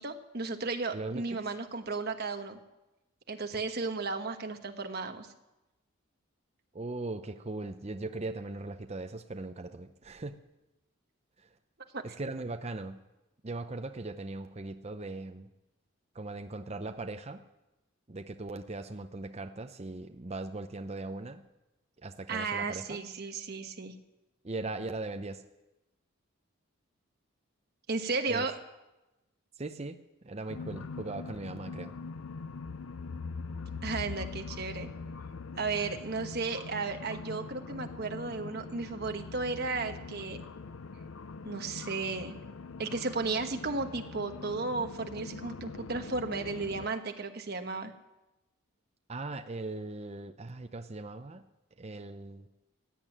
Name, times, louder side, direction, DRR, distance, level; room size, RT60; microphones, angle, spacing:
voice 1, 0.0-2.6 3.3-5.3 11.9-12.0 22.3-23.9 27.9-28.5 33.8-34.9 35.6-40.4 41.4-42.4 42.8-47.9, right 3 dB, 50° right, 6 dB, 1.2 m, -34 dB
voice 2, 0.9-1.2 6.7-10.4 12.0-13.0 13.4-15.5 16.1-17.4 18.1-21.4 22.0-23.0 24.4-25.4 28.3-28.5 29.6-30.0 30.2-31.9 49.1-51.4 51.8-52.5, right 2 dB, 30° right, 7 dB, 0.6 m, -39 dB
sound 1, 30.5-46.9, left 4 dB, 75° left, 0.6 m, -42 dB
16.5 x 9.1 x 9.0 m, 1.0 s
head